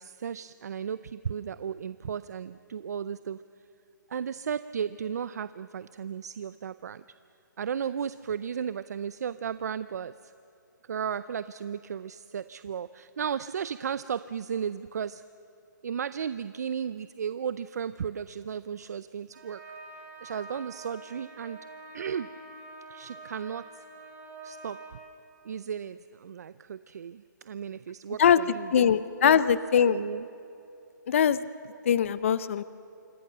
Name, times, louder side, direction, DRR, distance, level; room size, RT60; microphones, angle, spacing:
voice 1, 0.0-3.4 4.1-7.0 7.6-10.3 10.9-15.2 15.8-19.6 20.2-21.6 21.9-22.3 22.9-23.7 24.4-24.8 25.4-28.9 29.2-29.4 29.9-30.3 31.7-31.8, right 7 dB, 55° right, 15 dB, 0.5 m, -35 dB
sound 1, 19.3-24.9, right 2 dB, 35° right, 7.6 m, -46 dB
voice 2, 28.7-30.0 31.1-31.4 31.9-32.6, left 8 dB, 40° left, 16 dB, 0.6 m, -21 dB
26.5 x 23.0 x 6.7 m, 2.7 s
hypercardioid pair, 165°, 11 cm